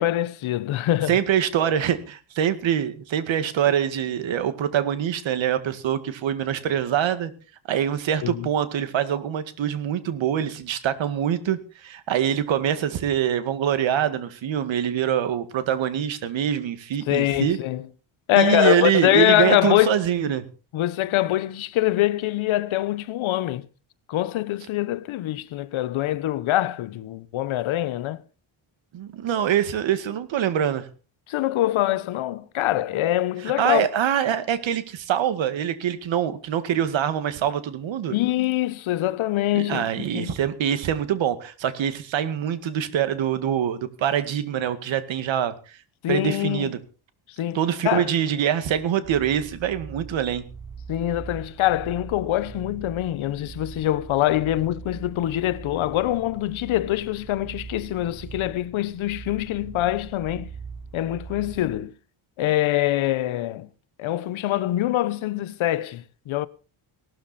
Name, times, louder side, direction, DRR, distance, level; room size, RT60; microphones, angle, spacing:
voice 1, 0.0-1.2 8.2-8.5 17.1-17.8 18.3-20.0 20.7-23.7 24.1-28.2 31.3-33.9 38.1-40.4 46.0-46.7 47.4-47.6 47.8-48.1 50.9-60.5 60.9-61.9 62.4-63.7 64.0-66.5, left 14 dB, 75° left, 1.1 m, -24 dB
voice 2, 1.1-7.3 7.7-17.6 18.3-20.4 28.9-30.9 33.6-38.1 39.5-45.5 46.1-46.8 47.5-50.4, right 9 dB, 65° right, 2.1 m, -24 dB
sound 1, 49.0-61.8, right 5 dB, 40° right, 4.6 m, -41 dB
18.0 x 13.0 x 4.3 m
cardioid pair, 155°, 49 cm